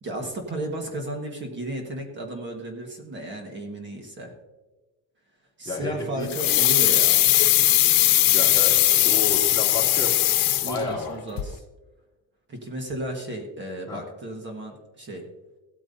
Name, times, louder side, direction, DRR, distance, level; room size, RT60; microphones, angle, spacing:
voice 1, 0.0-4.3 5.6-7.4 10.6-11.6 12.5-15.2, right 1 dB, 35° right, 3 dB, 1.5 m, -34 dB
voice 2, 5.6-6.3 8.3-10.1 10.7-11.2 13.9-14.0, left 3 dB, 10° left, -5 dB, 2.8 m, -31 dB
sound 1, 6.3-11.1 11.4-11.5, left 14 dB, 80° left, 0.9 m, -19 dB
16.0 x 8.9 x 2.7 m, 1.1 s
cardioid pair, 175°, 34 cm